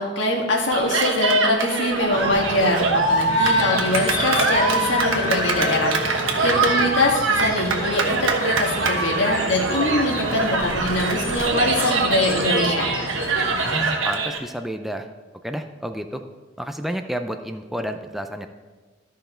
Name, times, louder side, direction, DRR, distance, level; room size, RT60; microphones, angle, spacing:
voice 1, 0.0-12.9, left 1 dB, 65° left, 0 dB, 1.7 m, -23 dB
Cheering, 0.7-14.4, right 3 dB, 85° right, 1.2 m, -23 dB
sound 1, 2.1-14.0, left 1 dB, 15° left, 1.6 m, -33 dB
Bowed string instrument, 3.3-6.6, left 5 dB, 85° left, 1.6 m, -30 dB
voice 2, 6.6-6.9 13.6-15.1 15.4-16.2 16.6-18.5, equal, ahead, 6 dB, 0.4 m, -30 dB
13.5 x 5.6 x 4.4 m, 1.3 s
head